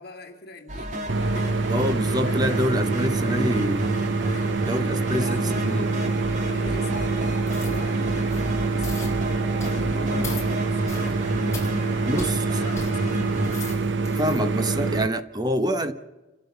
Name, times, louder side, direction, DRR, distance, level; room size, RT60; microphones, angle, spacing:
voice 1, 0.0-1.6 2.1-3.6 4.2-4.5 4.8-7.2 7.5-9.1 9.6-13.7 14.6-14.8, left 2 dB, 55° left, 2.2 m, -42 dB
sound 1, 0.7-13.8, equal, 40° right, 2.3 m, -33 dB
sound 2, 1.1-15.1, right 3 dB, 70° right, 0.8 m, -25 dB
voice 2, 1.7-3.8 4.6-5.4 5.7-5.9 12.1-12.4 14.2-15.9, equal, 20° right, 1.1 m, -26 dB
sound 3, 7.5-7.8 8.2-8.5 8.8-9.1 9.6-9.8 10.2-10.5 10.9-11.1 11.5-11.7 12.2-12.3 12.8-12.9 13.3-14.4 14.9-15.0, left 3 dB, 15° left, 4.7 m, -38 dB
28.5 x 13.0 x 7.0 m
head